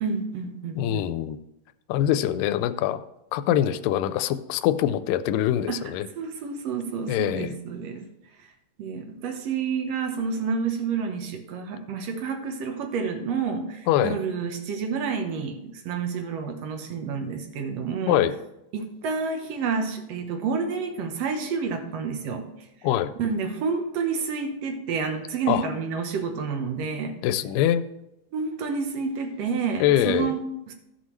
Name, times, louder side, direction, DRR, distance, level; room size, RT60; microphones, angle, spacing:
voice 1, 0.0-1.1 5.7-5.8 6.2-8.1 8.8-18.2 18.7-22.5 23.2-27.2 28.3-30.7, right 5 dB, 65° right, 5 dB, 1.7 m, -29 dB
voice 2, 0.8-1.4 1.9-3.0 3.3-6.1 7.1-7.6 13.9-14.2 18.1-18.3 22.8-23.1 25.5-25.7 27.2-27.8 29.8-30.3, left 11 dB, 85° left, 12 dB, 2.2 m, -23 dB
14.5 x 6.3 x 3.1 m, 0.89 s
omnidirectional pair, 3.9 m